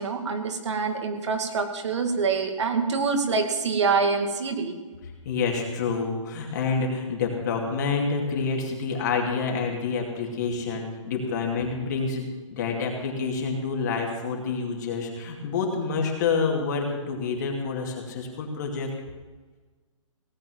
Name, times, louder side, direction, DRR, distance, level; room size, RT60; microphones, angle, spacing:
voice 1, 0.0-4.8, right 4 dB, 60° right, 5 dB, 2.4 m, -25 dB
voice 2, 5.2-18.9, left 4 dB, 35° left, 0 dB, 2.5 m, -28 dB
17.5 x 8.0 x 7.8 m, 1.3 s
hypercardioid pair, 170°, 17 cm